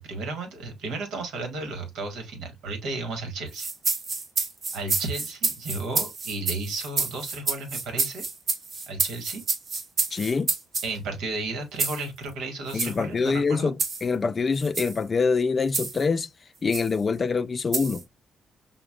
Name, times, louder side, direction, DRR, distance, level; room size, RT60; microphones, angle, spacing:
voice 1, 0.0-3.7 4.7-8.2 8.9-9.4 10.8-13.7, right 3 dB, 85° right, 1.5 m, -33 dB
Salsa Eggs - Green Egg (raw), 3.5-10.9 11.8-12.0 12.7-12.9 13.8-14.0 14.6-15.0 15.7-16.0 16.7-16.9 17.7-18.0, right 4 dB, 55° right, 1.2 m, -28 dB
voice 2, 10.1-10.5 12.7-16.3 16.6-18.0, left 4 dB, 35° left, 0.4 m, -25 dB
5.9 x 2.2 x 2.3 m
cardioid pair, 90°, 0 cm